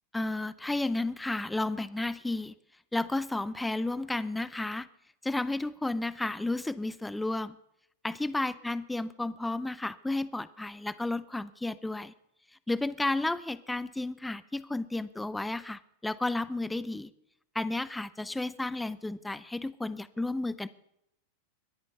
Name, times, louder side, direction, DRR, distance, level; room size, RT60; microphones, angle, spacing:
voice 1, 0.1-2.5 2.9-4.9 5.2-7.6 8.0-12.1 12.7-17.1 17.5-20.7, left 2 dB, 5° left, 17 dB, 0.6 m, -32 dB
22.5 x 9.4 x 5.5 m, 0.78 s
hypercardioid pair, 110°, 0 cm